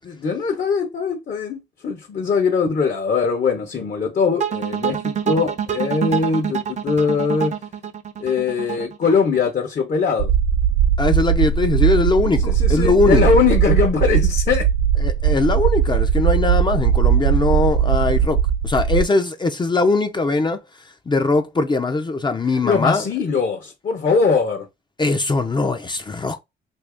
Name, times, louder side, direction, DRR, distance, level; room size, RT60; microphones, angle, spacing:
voice 1, 0.0-7.5 8.2-10.3 12.4-14.7 22.6-24.7, left 5 dB, 45° left, 0.9 m, -21 dB
sound 1, 4.4-9.5, right 8 dB, 35° right, 0.6 m, -26 dB
sound 2, 10.2-19.0, right 8 dB, 80° right, 0.8 m, -19 dB
voice 2, 11.0-13.2 15.0-20.6 21.1-23.1 25.0-26.4, left 3 dB, 25° left, 0.5 m, -20 dB
2.9 x 2.7 x 3.4 m
cardioid pair, 90°, 20 cm